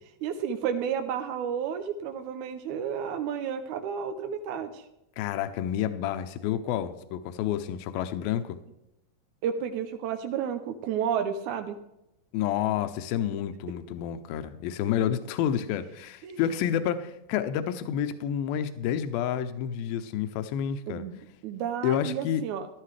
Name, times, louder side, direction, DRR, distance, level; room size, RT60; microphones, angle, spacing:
voice 1, 0.0-4.9 9.4-11.8 15.0-15.1 16.2-16.4 20.9-22.7, right 8 dB, 80° right, 7 dB, 1.8 m, -32 dB
voice 2, 5.2-8.6 12.3-21.0 21.8-22.4, left 10 dB, 85° left, 10 dB, 2.5 m, -29 dB
13.5 x 12.5 x 3.3 m, 0.88 s
omnidirectional pair, 4.2 m